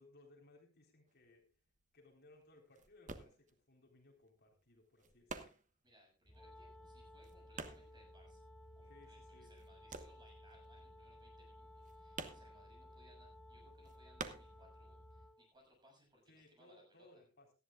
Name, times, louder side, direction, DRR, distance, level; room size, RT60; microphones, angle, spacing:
voice 1, 0.0-1.5 1.9-5.6 8.9-9.5 16.3-17.5, left 2 dB, 50° left, 2 dB, 3.8 m, -64 dB
sound 1, 1.1-9.1 9.3-15.2 15.5-16.5, right 4 dB, 40° right, 1.2 m, -51 dB
voice 2, 5.8-8.5 8.8-17.1, equal, 20° right, 0 dB, 7.1 m, -68 dB
sound 2, 6.2-15.3, equal, 20° left, 1.1 m, -61 dB
Wind instrument woodwind instrument, 6.3-15.5, left 1 dB, 5° left, 0.6 m, -60 dB
18.0 x 13.5 x 2.4 m, 0.32 s
head